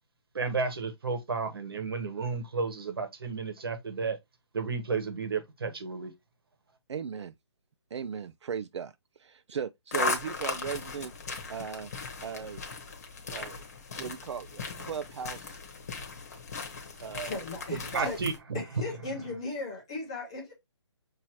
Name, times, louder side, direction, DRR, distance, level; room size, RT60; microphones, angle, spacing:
voice 1, 0.3-4.2 4.5-6.1 16.8-16.9 17.9-18.6, right 4 dB, 55° right, 1.2 m, -32 dB
voice 2, 6.9-7.3 7.9-8.9 9.2-11.1 11.5-11.9 12.2-12.6 13.3-13.6 13.9-15.6 17.0-17.4 17.9-18.1, right 7 dB, 70° right, 0.4 m, -37 dB
sound 1, 9.9-18.4, left 4 dB, 35° left, 0.9 m, -37 dB
voice 3, 17.3-18.2 18.5-20.5, left 3 dB, 10° left, 0.4 m, -37 dB
6.1 x 2.8 x 2.9 m
hypercardioid pair, 175°, 15 cm